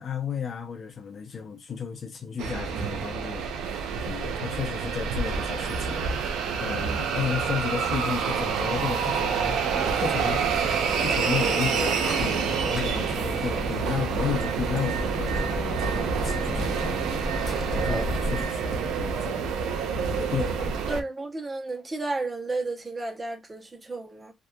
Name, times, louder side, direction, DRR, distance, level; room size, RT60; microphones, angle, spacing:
voice 1, 0.0-9.6 10.0-10.4 11.0-19.6 20.1-20.7, left 7 dB, 50° left, 0.6 m, -33 dB
sound 1, 2.4-21.0, right 6 dB, 90° right, 0.4 m, -27 dB
sound 2, 8.3-18.5, left 1 dB, 10° left, 0.7 m, -36 dB
voice 2, 20.9-24.3, right 2 dB, 25° right, 0.7 m, -32 dB
2.7 x 2.3 x 2.2 m
cardioid pair, 90°, 0 cm